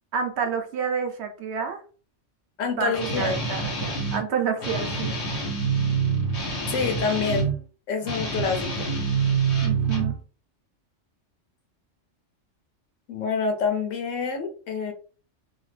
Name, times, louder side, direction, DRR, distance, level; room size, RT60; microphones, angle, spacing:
voice 1, 0.1-1.8 2.8-5.1 9.6-10.1, right 6 dB, 65° right, 5 dB, 0.8 m, -28 dB
voice 2, 2.6-3.4 6.7-7.5 7.9-8.9 13.1-14.9, left 5 dB, 85° left, 5 dB, 1.0 m, -27 dB
Guitar, 2.9-4.2 4.6-7.6 8.0-10.2, right 4 dB, 65° left, 1.4 m, -26 dB
2.7 x 2.2 x 3.1 m, 0.39 s
omnidirectional pair, 1.3 m